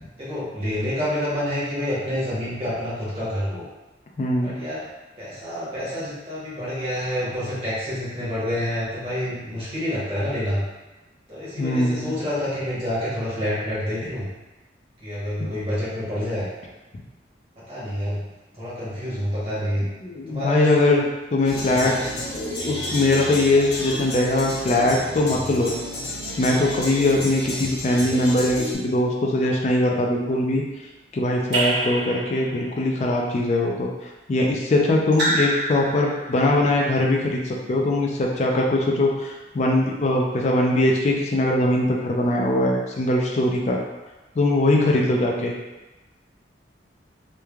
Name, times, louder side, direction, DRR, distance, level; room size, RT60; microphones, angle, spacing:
voice 1, 0.2-3.6 4.4-4.8 5.2-10.6 11.3-14.3 15.0-16.5 17.6-18.2 18.6-19.9 20.3-21.0 21.8-22.2, left 1 dB, 30° right, -9 dB, 1.0 m, -28 dB
voice 2, 4.2-4.6 11.6-12.1 20.0-21.9 22.6-25.7 26.4-30.6 31.1-33.9 34.3-43.8 44.4-45.5, left 1 dB, 40° left, 0 dB, 0.3 m, -21 dB
sound 1, 21.4-28.7, left 1 dB, 75° left, 0.7 m, -31 dB
Raindrop / Drip, 31.5-32.8 35.1-36.5, right 1 dB, 75° right, 1.2 m, -26 dB
3.1 x 2.2 x 2.3 m, 1.1 s
head